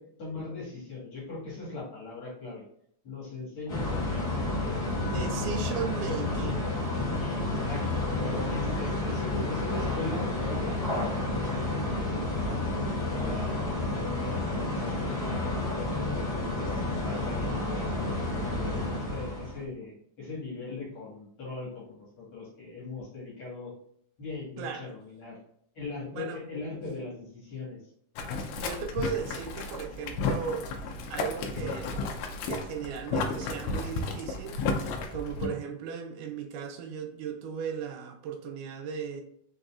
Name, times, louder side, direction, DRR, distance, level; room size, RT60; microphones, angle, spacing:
voice 1, 0.0-2.7 3.0-4.5 4.8-5.6 7.2-13.5 14.2-23.7 24.2-25.4 25.7-27.8, left 3 dB, 45° left, -6 dB, 2.5 m, -40 dB
sound 1, 3.7-19.6, left 2 dB, 70° left, 0.9 m, -30 dB
voice 2, 5.0-6.8 24.6-24.9 26.1-26.4 28.3-32.0 32.5-34.6 35.1-39.2, right 6 dB, 85° right, 4 dB, 2.2 m, -36 dB
sound 2, 7.9-19.7, right 1 dB, 40° right, 0.5 m, -47 dB
Boiling, 28.2-35.5, left 3 dB, 90° left, 2.3 m, -33 dB
5.3 x 4.0 x 2.4 m, 0.68 s
omnidirectional pair, 3.6 m